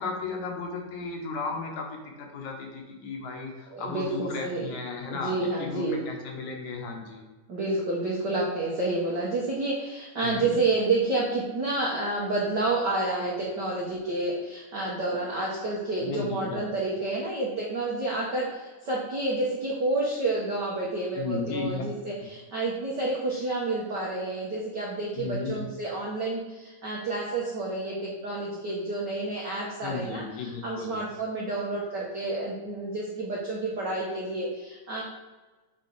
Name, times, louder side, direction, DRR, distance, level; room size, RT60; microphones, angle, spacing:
voice 1, 0.0-7.2 10.2-10.6 16.0-16.6 21.2-21.8 25.2-25.6 29.8-31.0, left 4 dB, 70° left, 1 dB, 2.3 m, -35 dB
voice 2, 3.7-4.7 5.1-6.0 7.5-35.0, right 2 dB, 65° right, -4 dB, 1.0 m, -29 dB
7.1 x 4.2 x 4.6 m, 1.2 s
omnidirectional pair, 3.6 m